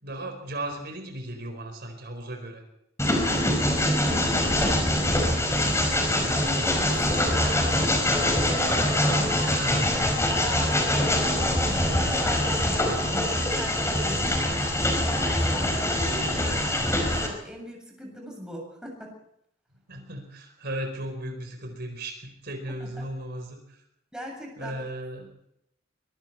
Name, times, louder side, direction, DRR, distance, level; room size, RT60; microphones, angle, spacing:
voice 1, 0.0-2.6 9.5-10.0 19.9-23.8 24.6-25.3, right 1 dB, 55° right, 5 dB, 4.6 m, -36 dB
Train, 3.0-17.3, left 1 dB, 15° left, 5.1 m, -24 dB
voice 2, 3.4-6.1 6.4-9.9 10.3-11.6 11.9-19.1 22.8-23.0 24.1-24.8, equal, 5° right, 0 dB, 7.8 m, -39 dB
24.0 x 23.5 x 4.6 m, 0.76 s
head